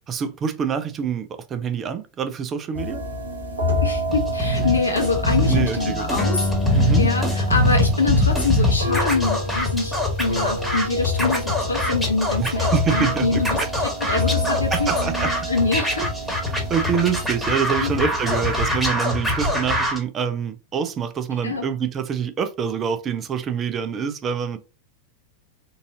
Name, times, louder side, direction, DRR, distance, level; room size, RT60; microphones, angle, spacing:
voice 1, 0.1-3.0 5.5-6.1 6.8-7.1 12.4-13.4 14.1-14.3 14.7-15.5 16.5-24.6, right 7 dB, 25° right, 0.5 m, -26 dB
sound 1, 2.7-18.9, left 1 dB, 80° right, 1.1 m, -29 dB
voice 2, 3.8-14.9 15.2-16.1 17.8-18.0 21.4-21.6, left 3 dB, 80° left, 0.9 m, -25 dB
Scratching (performance technique), 4.1-20.0, left 1 dB, ahead, 1.4 m, -24 dB
sound 2, 6.2-13.0, left 2 dB, 20° left, 0.9 m, -29 dB
3.9 x 2.5 x 2.7 m
figure-of-eight pair, 90°, 0 cm